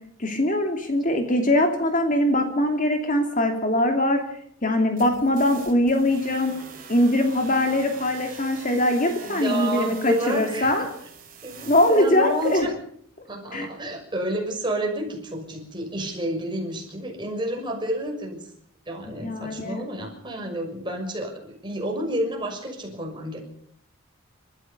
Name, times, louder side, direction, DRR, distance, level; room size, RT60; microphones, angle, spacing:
voice 1, 0.2-4.2 4.6-6.5 6.9-10.9 11.7-12.7 13.5-13.7 19.1-19.8, left 1 dB, 40° left, 5 dB, 2.7 m, -22 dB
sound 1, 5.0-12.7, right 5 dB, 40° right, 5.4 m, -44 dB
voice 2, 9.2-10.9 11.4-12.7 13.3-18.5 18.9-23.4, right 1 dB, 20° right, 1 dB, 6.3 m, -30 dB
29.5 x 14.5 x 6.7 m, 0.65 s
head